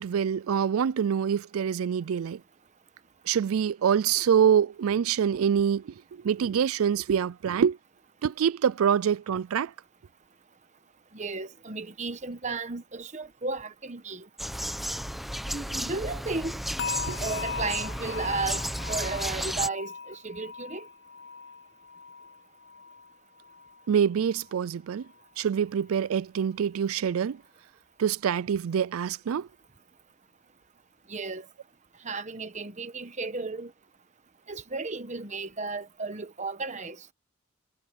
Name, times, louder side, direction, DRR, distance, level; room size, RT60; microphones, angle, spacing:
voice 1, 0.0-2.4 3.3-5.9 6.2-7.8 8.2-9.7 17.1-17.2 23.9-25.1 25.4-27.4 28.0-29.5, right 8 dB, 75° right, 0.4 m, -25 dB
voice 2, 11.1-14.3 15.5-16.6 17.2-20.9 31.1-31.5 32.0-33.7 34.5-37.1, right 3 dB, 35° right, 1.2 m, -34 dB
sound 1, 14.4-19.7, equal, ahead, 1.0 m, -33 dB
sound 2, 16.8-23.9 24.2-24.6 25.0-25.2, left 5 dB, 50° left, 0.5 m, -39 dB
head